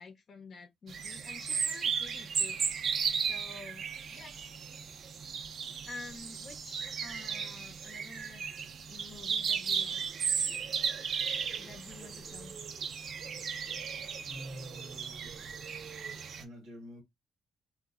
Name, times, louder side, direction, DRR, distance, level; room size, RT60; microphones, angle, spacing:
voice 1, 0.0-2.6 3.2-3.8 4.1-4.3 5.8-8.5 8.9-10.0 11.6-12.6, left 3 dB, 55° left, 0.6 m, -49 dB
sound 1, 0.9-16.4, right 6 dB, 60° right, 0.4 m, -35 dB
voice 2, 14.3-15.4 16.2-17.0, equal, 85° right, 0.9 m, -47 dB
3.0 x 2.2 x 2.4 m
cardioid pair, 100°, 0 cm